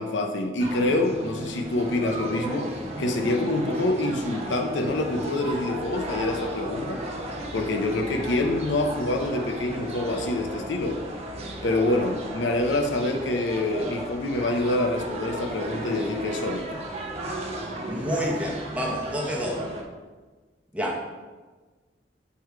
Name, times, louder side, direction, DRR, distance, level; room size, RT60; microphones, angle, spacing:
voice 1, 0.0-2.7 3.0-7.0 7.5-11.0 11.6-16.7, left 2 dB, 85° left, 4 dB, 0.7 m, -26 dB
sound 1, 0.6-19.8, right 1 dB, 35° right, 0.8 m, -35 dB
voice 2, 17.9-19.6 20.7-21.0, equal, 5° right, -2 dB, 0.9 m, -28 dB
6.9 x 3.1 x 4.6 m, 1.3 s
head